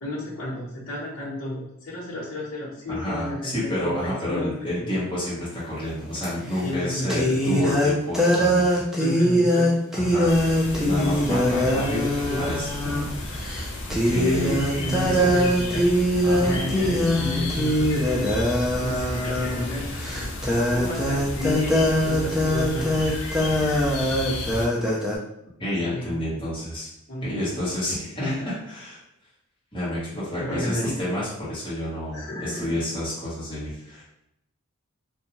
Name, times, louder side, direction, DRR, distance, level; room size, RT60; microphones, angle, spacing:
voice 1, 0.0-5.0 6.6-7.8 9.0-9.7 10.7-11.9 12.3-12.4 14.1-14.5 14.8-15.9 16.4-18.3 18.8-23.1 25.9-26.2 27.1-27.2 28.2-28.4 30.4-31.0 32.1-32.8, left 1 dB, 75° left, -7 dB, 0.9 m, -32 dB
voice 2, 2.9-8.8 9.9-10.3 10.8-13.2 14.0-15.3 16.2-17.3 25.6-26.9 27.2-29.0 29.7-34.1, left 1 dB, 25° left, -9 dB, 1.0 m, -29 dB
sound 1, 6.2-6.3 7.1-13.1 13.4-13.6 13.9-25.2, equal, ahead, 0.4 m, -22 dB
sound 2, 10.3-24.7, left 1 dB, 55° left, 0.5 m, -33 dB
2.6 x 2.2 x 2.9 m, 0.79 s
head